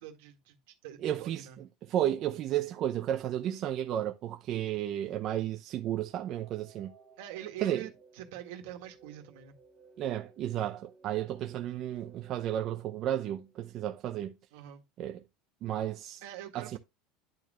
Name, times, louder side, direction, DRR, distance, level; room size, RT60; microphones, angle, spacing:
voice 1, 0.0-1.6 7.2-9.6 14.5-14.8 16.2-16.8, right 11 dB, 70° right, 1.8 m, -45 dB
voice 2, 1.0-1.5 1.9-6.9 7.6-7.8 10.0-14.3 15.0-15.2 15.6-16.2 16.5-16.8, right 11 dB, 40° right, 0.7 m, -33 dB
sound 1, 6.0-14.0, right 5 dB, 5° right, 2.0 m, -59 dB
10.5 x 4.4 x 3.1 m
supercardioid pair, 155°, 0 cm